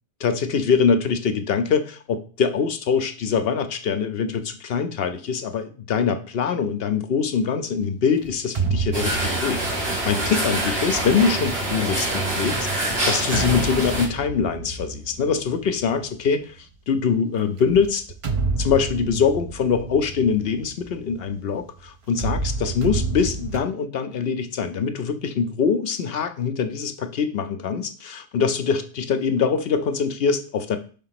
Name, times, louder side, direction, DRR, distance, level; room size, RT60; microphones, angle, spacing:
voice 1, 0.2-18.1 18.6-30.8, left 6 dB, 65° left, 10 dB, 0.7 m, -23 dB
sound 1, 8.3-12.0 12.7-16.3 17.6-21.6 22.1-23.6, right 4 dB, 45° right, 0.4 m, -30 dB
sound 2, 8.9-14.1, right 1 dB, 65° right, 1.8 m, -25 dB
5.0 x 3.6 x 5.7 m, 0.39 s
omnidirectional pair, 1.2 m